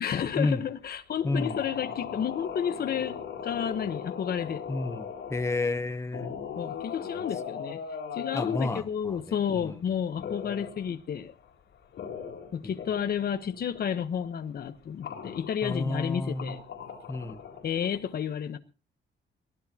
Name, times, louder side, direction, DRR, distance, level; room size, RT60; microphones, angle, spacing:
voice 1, 0.0-4.6 6.6-7.8 8.1-11.3 12.5-16.6 17.6-18.6, left 8 dB, 55° left, 1.1 m, -31 dB
sound 1, 1.2-5.8 6.1-8.8 10.2-11.0 11.4-11.5 11.7-13.3 13.5-13.9 14.1-14.2 15.0-16.0 16.3-18.0, left 7 dB, 75° left, 4.2 m, -39 dB
voice 2, 1.2-1.6 4.7-6.4 8.3-9.2 9.5-9.8 12.6-12.7 15.6-16.6 17.1-17.4, left 2 dB, 15° left, 0.8 m, -30 dB
22.5 x 15.5 x 2.9 m
wide cardioid pair, 160°, 19 cm